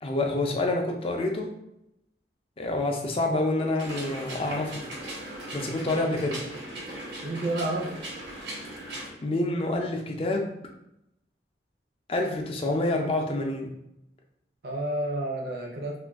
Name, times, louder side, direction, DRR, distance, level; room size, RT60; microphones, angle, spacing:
voice 1, 0.0-1.5 2.6-4.8 5.5-6.4 9.2-10.5 12.1-13.7, left 2 dB, 30° left, 2 dB, 0.4 m, -27 dB
sound 1, 3.8-9.1, right 1 dB, 85° right, 1.0 m, -38 dB
voice 2, 7.2-7.9 14.6-16.0, right 1 dB, 60° right, -1 dB, 0.6 m, -30 dB
2.5 x 2.2 x 3.4 m, 0.84 s
head